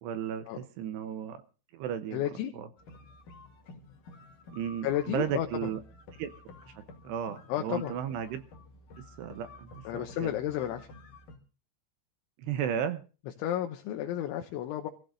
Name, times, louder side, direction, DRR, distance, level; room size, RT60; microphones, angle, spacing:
voice 1, 0.0-1.4 1.7-2.2 2.5-2.7 4.5-5.8 6.2-6.3 6.7-6.8 7.0-8.4 9.2-10.3 12.4-13.0, right 9 dB, 75° right, 10 dB, 2.7 m, -34 dB
voice 2, 2.1-2.5 4.8-5.5 7.5-7.9 9.8-10.9 13.4-14.9, left 11 dB, 80° left, 4 dB, 3.4 m, -32 dB
sound 1, 2.8-11.4, left 2 dB, 55° left, 2.9 m, -51 dB
26.5 x 15.5 x 2.6 m, 0.36 s
omnidirectional pair, 5.5 m